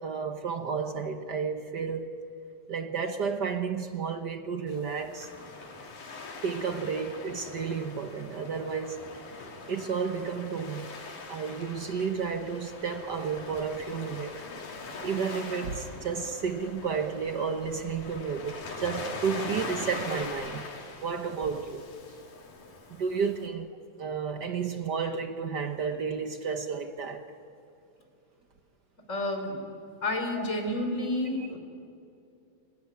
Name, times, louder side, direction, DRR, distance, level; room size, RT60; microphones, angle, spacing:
voice 1, 0.0-2.1 2.7-5.3 6.4-9.0 9.7-10.9 11.3-14.4 15.0-20.7 21.0-21.8 22.9-23.7 24.0-27.2 30.4-30.5 31.4-31.5, right 6 dB, 55° right, 1.1 m, -32 dB
Waves surf, 4.7-23.5, left 3 dB, 90° left, 4.7 m, -42 dB
voice 2, 29.1-29.6 30.0-31.6, left 1 dB, 25° left, 4.6 m, -30 dB
30.0 x 20.0 x 9.7 m
omnidirectional pair, 3.5 m